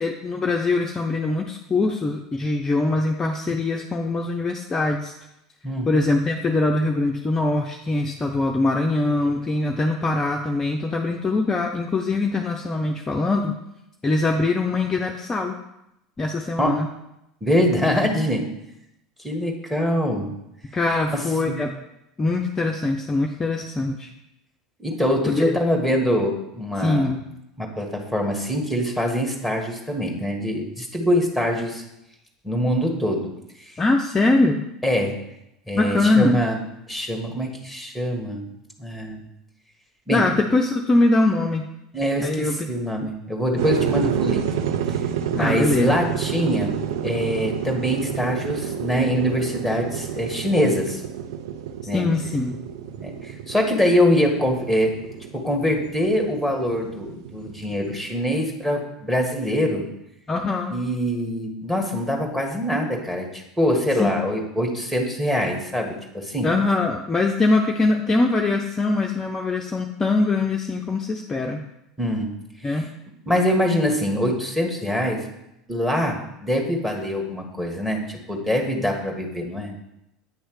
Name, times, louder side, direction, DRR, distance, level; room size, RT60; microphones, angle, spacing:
voice 1, 0.0-5.1 5.9-13.5 14.0-15.5 16.2-16.9 20.7-21.7 22.2-24.1 25.3-25.5 26.8-27.2 33.8-34.6 35.8-36.4 40.1-41.6 42.2-42.7 45.3-46.0 51.9-52.6 60.3-60.7 64.0-64.1 66.4-71.6 72.6-72.9, left 2 dB, 20° left, 2 dB, 0.6 m, -22 dB
voice 2, 17.4-18.4 19.2-20.3 21.1-21.6 24.8-27.1 27.6-31.8 32.4-33.3 34.8-35.1 35.7-36.5 36.9-38.4 38.8-39.2 40.1-40.2 41.9-44.5 45.3-46.8 47.0-51.0 51.9-52.1 53.0-54.9 55.3-59.9 60.7-66.5 72.0-72.3 72.7-72.8 73.2-75.2 75.7-79.7, equal, 5° right, 2 dB, 1.5 m, -24 dB
sound 1, 43.6-58.1, right 9 dB, 65° right, 0.4 m, -29 dB
8.6 x 3.1 x 6.3 m, 0.86 s
figure-of-eight pair, 75°, 2 cm